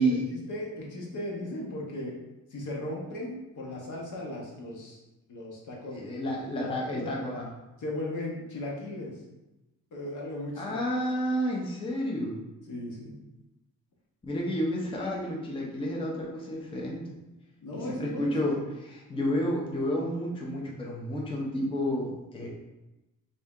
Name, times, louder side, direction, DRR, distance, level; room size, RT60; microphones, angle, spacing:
voice 1, 0.0-2.2 2.5-5.0 5.3-7.2 7.8-9.2 9.9-10.8 12.7-13.2 17.6-18.3, left 1 dB, 65° left, -2 dB, 1.0 m, -37 dB
voice 2, 5.9-7.5 10.6-12.4 14.2-17.1 17.8-22.5, equal, 15° left, -2 dB, 0.5 m, -30 dB
3.3 x 2.7 x 3.6 m, 0.99 s
wide cardioid pair, 140°, 33 cm